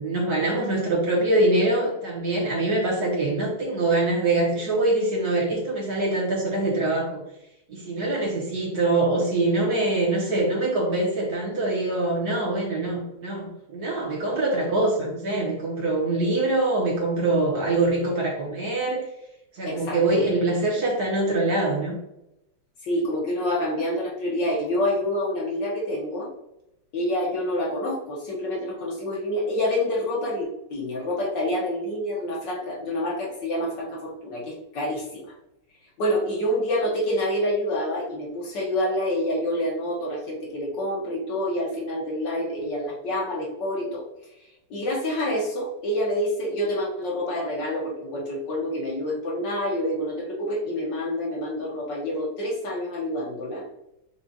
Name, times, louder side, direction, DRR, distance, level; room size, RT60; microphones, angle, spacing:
voice 1, 0.0-7.2 7.7-19.0 19.5-22.0, right 2 dB, 55° right, -4 dB, 1.3 m, -24 dB
voice 2, 19.6-20.2 22.8-26.3 26.9-35.3 36.0-44.0 44.7-53.6, left 1 dB, 60° left, -3 dB, 1.5 m, -27 dB
5.9 x 2.4 x 2.7 m, 0.87 s
omnidirectional pair, 2.3 m